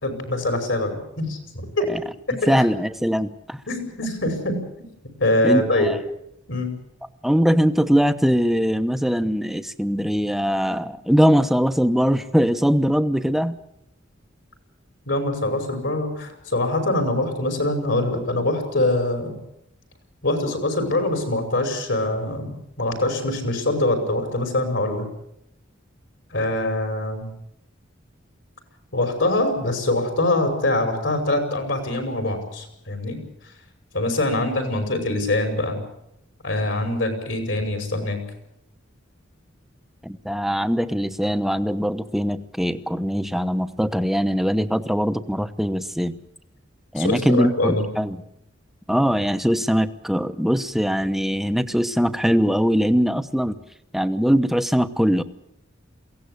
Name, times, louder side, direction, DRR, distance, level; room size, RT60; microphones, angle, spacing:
voice 1, 0.0-1.9 2.3-2.7 3.7-4.6 5.2-5.9 6.5-6.7 15.1-19.4 20.2-25.1 26.3-27.3 28.9-33.2 33.9-35.8 36.4-38.2 47.0-47.9, left 1 dB, 65° left, 6 dB, 5.8 m, -24 dB
voice 2, 2.5-3.6 5.4-6.0 7.2-13.6 40.0-46.2 46.9-48.2 48.9-53.6 53.9-55.2, equal, ahead, 10 dB, 0.9 m, -21 dB
22.5 x 17.5 x 8.2 m, 0.78 s
head